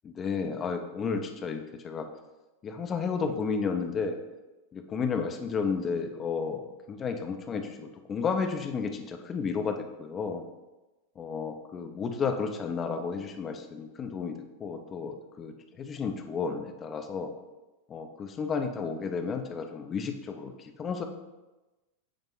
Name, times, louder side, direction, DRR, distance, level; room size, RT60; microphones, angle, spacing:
voice 1, 0.0-2.0 2.6-4.2 4.7-10.4 11.2-15.5 15.8-17.3 17.9-20.5 20.8-21.0, left 5 dB, 25° left, 5 dB, 0.6 m, -32 dB
8.5 x 2.9 x 3.8 m, 1.1 s
figure-of-eight pair, 90°, 0 cm